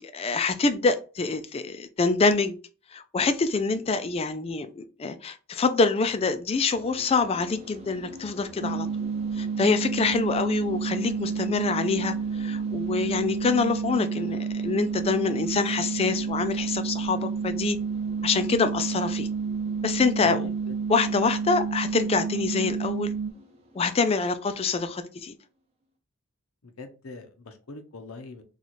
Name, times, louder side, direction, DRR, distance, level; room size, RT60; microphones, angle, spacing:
voice 1, 0.0-2.6 2.9-8.9 9.3-17.8 18.2-19.3 19.8-20.5 20.9-23.1 23.7-25.3, left 4 dB, 25° left, 0.3 m, -26 dB
sound 1, 6.7-25.4, equal, 30° right, 0.7 m, -47 dB
sound 2, 8.6-23.3, right 5 dB, 65° right, 0.3 m, -30 dB
voice 2, 20.2-20.7 26.6-28.4, left 3 dB, 80° left, 0.7 m, -43 dB
3.0 x 2.4 x 4.0 m
head